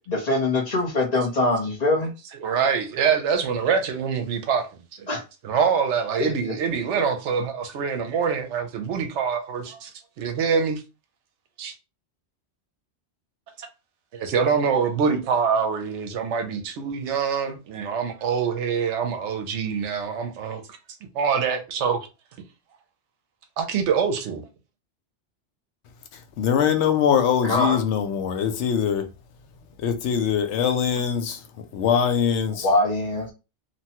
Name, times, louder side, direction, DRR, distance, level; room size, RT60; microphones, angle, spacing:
voice 1, 0.1-2.1 5.1-5.2 6.2-6.3 27.5-27.8 32.6-33.3, left 2 dB, 40° left, 0.9 m, -23 dB
voice 2, 2.3-4.7 5.0-5.1 5.4-9.9 10.2-10.8 11.6-11.7 13.6-13.7 14.1-20.6 21.1-22.0 23.6-24.4, right 6 dB, 80° right, 0.9 m, -25 dB
voice 3, 26.1-29.1 29.8-31.5 31.7-32.7, left 8 dB, 75° left, 0.9 m, -22 dB
2.9 x 2.2 x 2.8 m
omnidirectional pair, 1.2 m